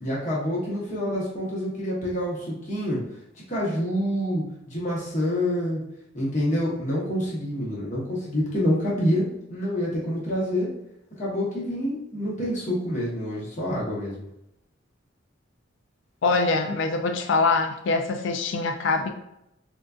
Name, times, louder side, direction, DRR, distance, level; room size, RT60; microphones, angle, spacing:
voice 1, 0.0-3.0 3.5-5.8 6.1-9.2 9.5-10.7 11.2-14.3, equal, 40° left, -6 dB, 0.8 m, -27 dB
voice 2, 16.2-19.1, left 3 dB, 70° left, 5 dB, 0.3 m, -24 dB
3.7 x 2.4 x 2.3 m, 0.83 s
head